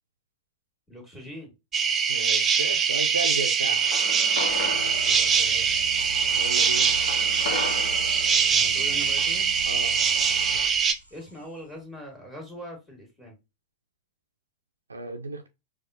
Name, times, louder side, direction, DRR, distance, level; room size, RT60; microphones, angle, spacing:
voice 1, 0.9-1.5 5.0-5.8 8.5-9.5 11.1-13.4, equal, 10° left, 1.7 m, -42 dB
sound 1, 1.7-10.9, right 6 dB, 20° right, 0.5 m, -23 dB
voice 2, 2.1-3.9 6.3-6.9 9.7-10.0 14.9-15.5, right 3 dB, 75° right, 0.5 m, -34 dB
sound 2, 3.8-10.7, left 4 dB, 55° left, 1.1 m, -38 dB
sound 3, 4.3-11.5, right 2 dB, 85° left, 0.8 m, -38 dB
4.6 x 2.3 x 2.6 m
figure-of-eight pair, 90°, 0 cm